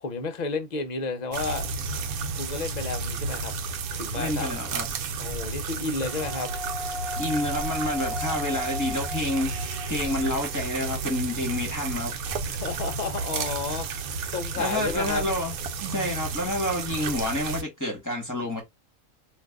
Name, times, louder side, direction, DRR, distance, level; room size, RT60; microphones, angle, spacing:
voice 1, 0.0-1.7 2.4-3.5 3.9-4.5 5.2-6.5 12.5-13.9 14.3-15.2, left 4 dB, 50° left, 0.5 m, -31 dB
sound 1, 1.3-17.6, right 4 dB, 80° right, 1.0 m, -32 dB
voice 2, 4.1-4.9 7.2-12.1 14.6-15.5 15.9-18.6, left 1 dB, 15° left, 1.0 m, -29 dB
Wind instrument woodwind instrument, 6.1-11.6, left 1 dB, 55° right, 0.7 m, -37 dB
2.6 x 2.5 x 3.4 m
omnidirectional pair, 1.5 m